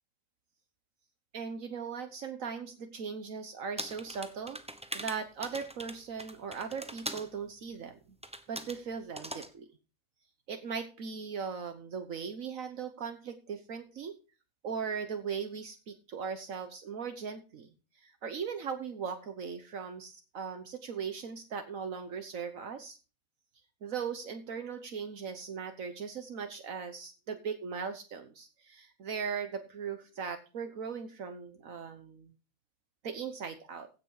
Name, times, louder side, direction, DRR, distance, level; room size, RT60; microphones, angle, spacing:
voice 1, 1.3-4.6 4.9-8.0 8.5-9.7 10.5-14.1 14.6-17.7 18.0-23.0 23.8-32.3 33.0-33.9, right 6 dB, 70° right, 8 dB, 1.5 m, -39 dB
sound 1, 3.8-7.3 8.2-8.8 9.2-9.5, right 1 dB, 5° right, 0.8 m, -41 dB
16.0 x 5.8 x 4.8 m, 0.33 s
omnidirectional pair, 1.5 m